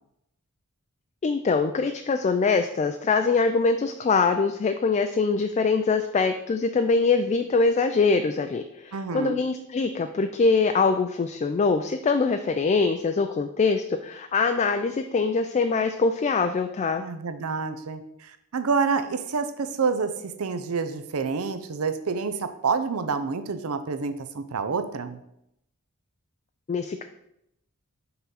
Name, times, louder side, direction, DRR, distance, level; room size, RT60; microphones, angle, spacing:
voice 1, 1.2-17.0 26.7-27.0, left 4 dB, 30° left, 7 dB, 0.3 m, -23 dB
voice 2, 8.9-9.4 17.0-25.2, right 5 dB, 70° right, 10 dB, 0.5 m, -28 dB
5.7 x 3.8 x 5.6 m, 0.79 s
head